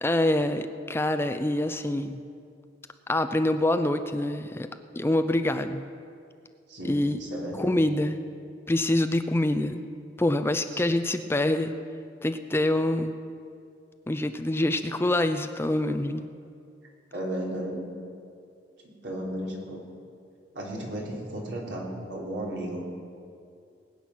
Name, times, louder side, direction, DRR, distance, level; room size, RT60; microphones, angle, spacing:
voice 1, 0.0-2.2 3.1-4.7 5.0-5.9 6.9-7.2 7.5-8.2 8.7-9.8 10.2-11.7 12.2-13.2 14.1-16.3, left 1 dB, 15° left, 9 dB, 0.5 m, -25 dB
voice 2, 6.7-7.8 10.7-10.8 17.1-17.8 18.8-19.8 20.5-22.8, right 1 dB, 85° right, -3 dB, 3.3 m, -34 dB
20.5 x 9.0 x 6.0 m, 2.4 s
head